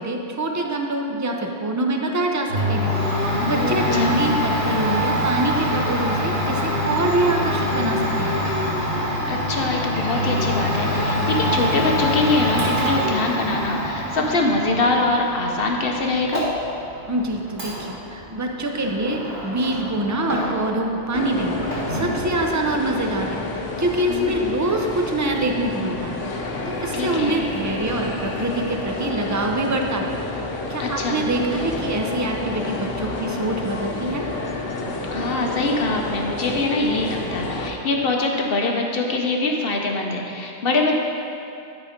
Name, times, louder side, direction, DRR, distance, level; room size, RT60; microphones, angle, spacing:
voice 1, 0.0-2.9 3.4-8.4 17.1-21.6 21.9-23.4 23.8-26.2 26.7-30.2 30.7-34.2, right 1 dB, 25° right, 2 dB, 0.3 m, -25 dB
Domestic sounds home sounds, 2.5-20.8 21.1-22.2, equal, 65° right, 2.4 m, -25 dB
voice 2, 3.5-4.2 9.3-16.4 24.1-24.3 26.9-27.4 30.8-31.3 35.1-41.0, left 2 dB, 55° left, 1 dB, 0.9 m, -23 dB
sound 1, 21.1-37.7, left 2 dB, 80° left, 1.2 m, -29 dB
12.0 x 4.2 x 5.0 m, 2.7 s
omnidirectional pair, 1.3 m